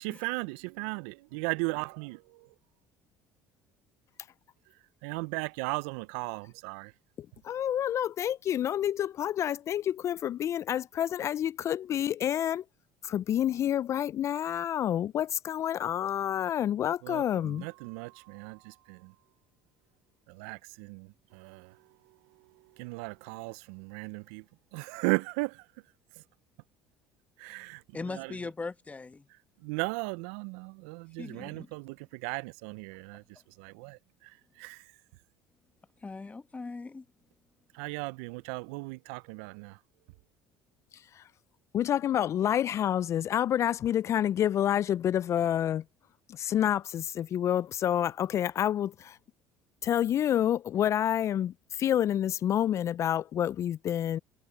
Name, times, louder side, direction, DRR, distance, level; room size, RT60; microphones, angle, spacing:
voice 1, 0.0-2.5 4.7-6.9 17.0-19.1 20.3-24.5 24.7-25.7 26.2-26.3 27.4-28.4 29.3-35.0 37.7-39.8, right 27 dB, 80° right, 0.4 m, -37 dB
voice 2, 7.4-12.6 13.0-17.7 40.9-41.2 41.7-45.8 46.3-49.2 49.8-54.2, left 10 dB, 45° left, 0.3 m, -28 dB
voice 3, 27.9-29.3 31.2-31.7 36.0-37.0, left 3 dB, 20° left, 1.2 m, -39 dB
hypercardioid pair, 75°, 7 cm